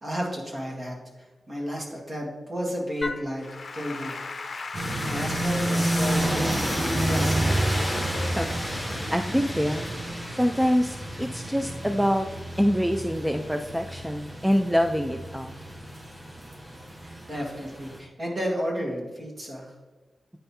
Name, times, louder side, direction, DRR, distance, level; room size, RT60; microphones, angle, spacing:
voice 1, 0.0-3.5 3.7-4.2 4.5-4.7 5.0-6.7 7.1-7.6 17.0-19.7, equal, 40° right, -2 dB, 1.8 m, -32 dB
Applause / Keyboard (musical), 3.0-12.3, left 3 dB, 50° left, 0.6 m, -37 dB
sound 1, 4.7-18.0, right 1 dB, 20° right, 0.8 m, -30 dB
voice 2, 8.4-9.9 10.3-12.3 12.6-15.5, equal, 5° right, 5 dB, 0.3 m, -25 dB
8.8 x 5.6 x 2.8 m, 1.3 s
wide cardioid pair, 115°, 0 cm